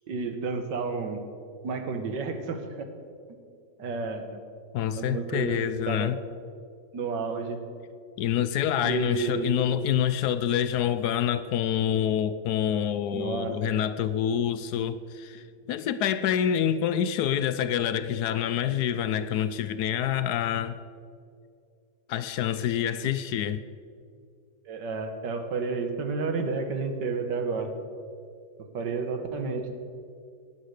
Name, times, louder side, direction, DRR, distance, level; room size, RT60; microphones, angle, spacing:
voice 1, 0.1-1.2 1.6-2.9 3.8-4.4 5.0-5.6 5.9-6.1 6.9-7.6 8.8-9.6 13.1-13.7 24.7-27.7 28.6-29.8, right 4 dB, 80° right, 6 dB, 1.9 m, -31 dB
voice 2, 4.7-6.2 8.2-20.8 22.1-23.6, left 9 dB, 75° left, 12 dB, 1.0 m, -27 dB
18.5 x 7.4 x 6.4 m, 2.3 s
omnidirectional pair, 1.9 m